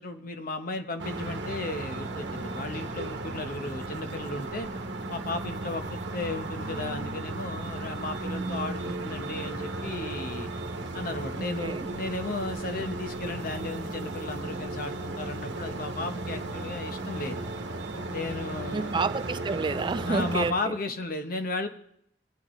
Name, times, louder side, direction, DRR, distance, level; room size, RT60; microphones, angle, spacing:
voice 1, 0.0-4.7 5.1-10.5 10.9-17.4 18.1-19.0 20.1-21.7, left 2 dB, 55° left, 1.0 m, -35 dB
sound 1, 1.0-20.5, right 2 dB, 90° right, 1.1 m, -35 dB
voice 2, 11.3-11.9 18.7-20.8, right 4 dB, 25° right, 0.4 m, -30 dB
25.5 x 8.6 x 3.2 m
head